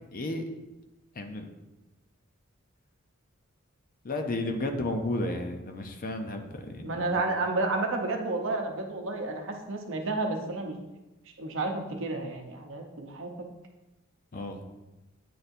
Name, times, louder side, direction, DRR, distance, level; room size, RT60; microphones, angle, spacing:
voice 1, 0.1-0.4 1.2-1.4 4.0-7.2 14.3-14.6, left 2 dB, 40° left, 5 dB, 0.6 m, -33 dB
voice 2, 6.8-10.7 11.4-13.5, right 2 dB, 65° right, 3 dB, 0.8 m, -31 dB
9.2 x 4.2 x 2.6 m, 1.0 s
head